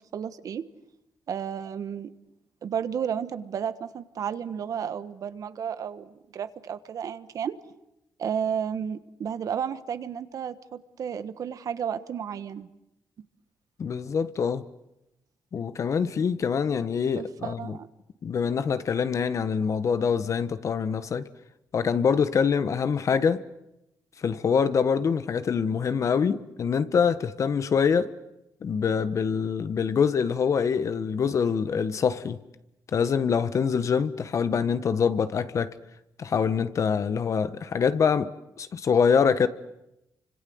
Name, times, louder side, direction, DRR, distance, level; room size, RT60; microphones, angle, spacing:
voice 1, 0.1-0.6 1.3-2.1 2.6-7.6 8.2-12.7 17.2-17.9, right 8 dB, 65° right, 1.4 m, -32 dB
voice 2, 13.8-14.6 15.5-17.8 18.2-21.3 21.7-23.4 24.2-28.1 28.6-32.4 32.9-35.7 36.2-38.3 38.6-39.5, left 6 dB, 55° left, 1.4 m, -25 dB
29.0 x 25.5 x 8.0 m
cardioid pair, 100°, 6 cm